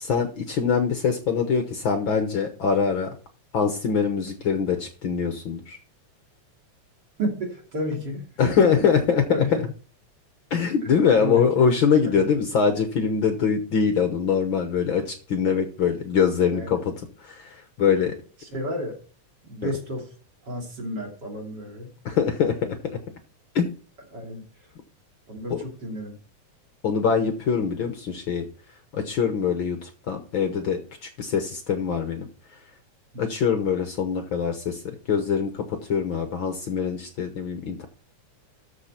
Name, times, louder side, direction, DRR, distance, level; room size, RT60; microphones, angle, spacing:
voice 1, 0.0-3.2 3.5-5.8 8.4-9.4 10.5-16.9 17.2-18.1 19.6-19.7 22.0-23.0 23.5-23.7 25.5-25.6 26.8-28.5 28.9-32.6 33.2-37.9, left 6 dB, 65° left, 6 dB, 1.3 m, -23 dB
voice 2, 7.2-8.7 9.3-9.5 10.8-10.9 11.2-11.7 12.0-12.3 16.5-16.8 18.4-19.0 19.4-20.1 20.4-21.9 24.1-24.4 25.3-26.2 33.1-33.2, equal, 35° right, 1 dB, 3.2 m, -32 dB
13.5 x 5.7 x 4.3 m, 0.40 s
omnidirectional pair, 3.4 m